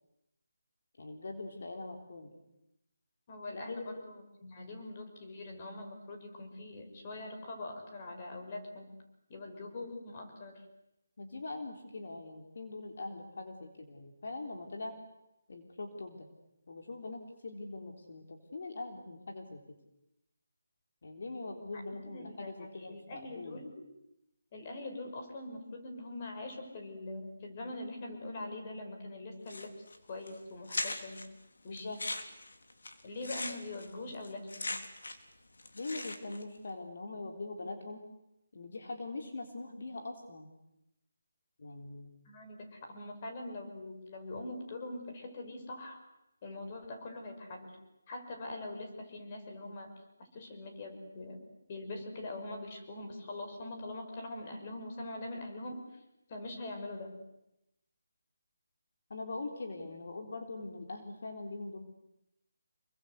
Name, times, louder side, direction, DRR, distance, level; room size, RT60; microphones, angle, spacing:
voice 1, 1.0-2.4 3.5-3.9 11.2-15.0 15.5-16.3 16.7-19.6 21.0-23.6 31.7-32.0 35.7-38.0 38.5-40.5 41.6-42.1 59.1-61.8, left 2 dB, 60° left, 3 dB, 3.7 m, -42 dB
voice 2, 3.3-8.9 9.3-10.6 21.7-23.8 24.5-31.3 31.6-32.0 33.0-34.7 42.3-46.0 46.4-47.8 48.1-49.9 50.2-51.4 51.7-56.0 56.3-57.1, left 2 dB, 30° left, 3 dB, 6.0 m, -43 dB
sound 1, 29.5-30.0 30.3-30.4 30.7-31.3 31.8-35.3 35.6-36.4, left 2 dB, 75° left, 4.0 m, -39 dB
27.5 x 23.5 x 8.3 m, 0.88 s
figure-of-eight pair, 165°, 0 cm